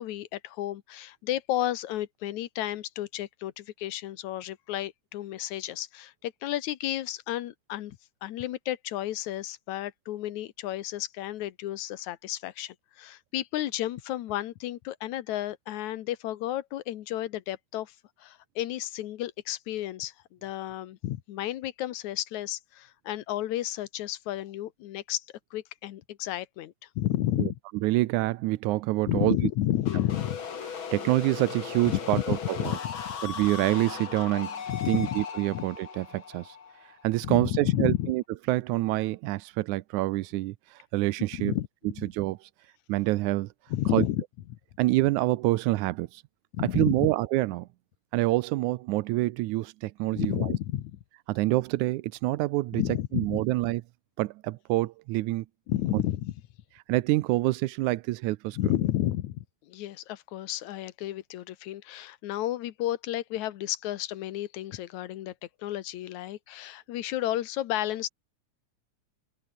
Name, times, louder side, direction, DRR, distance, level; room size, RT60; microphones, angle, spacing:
voice 1, 0.0-25.2 25.5-27.6 29.1-30.4 31.9-33.0 34.7-35.2 35.5-35.6 37.2-38.1 41.4-41.7 42.0-42.1 43.7-44.2 44.5-44.6 46.5-47.1 50.1-51.0 52.7-53.4 55.7-56.3 58.5-65.3 65.6-68.1, left 13 dB, 75° left, 2.4 m, -32 dB
voice 2, 27.8-29.4 30.9-32.7 33.2-34.5 34.9-36.6 37.0-41.5 42.1-42.4 42.9-43.5 43.9-44.0 44.8-46.2 46.7-47.7 48.1-50.5 51.3-52.8 53.1-53.8 54.2-55.5 55.9-56.0 56.9-58.6, right 18 dB, 90° right, 2.1 m, -26 dB
sound 1, 29.9-37.6, left 6 dB, 45° left, 2.7 m, -38 dB
open air
omnidirectional pair, 3.4 m